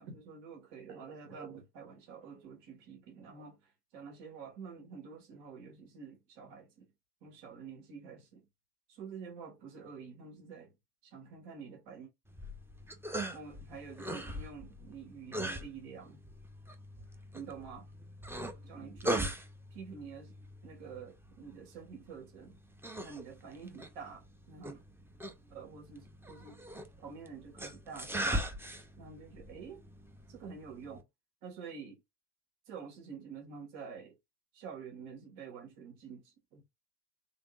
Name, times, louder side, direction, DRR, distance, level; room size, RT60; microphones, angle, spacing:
voice 1, 0.0-6.9 7.2-8.4 8.9-10.7 11.0-12.1 13.3-16.2 17.3-17.9 18.6-19.4 19.7-20.3 20.6-22.6 23.0-24.8 25.5-26.6 27.0-28.5 29.0-29.8 30.3-31.0 31.4-32.0 32.7-34.1 34.5-36.6, right 5 dB, 60° right, 1.9 m, -48 dB
sound 1, 12.3-31.0, right 1 dB, 5° right, 0.6 m, -41 dB
3.6 x 3.4 x 2.4 m
hypercardioid pair, 80°, 49 cm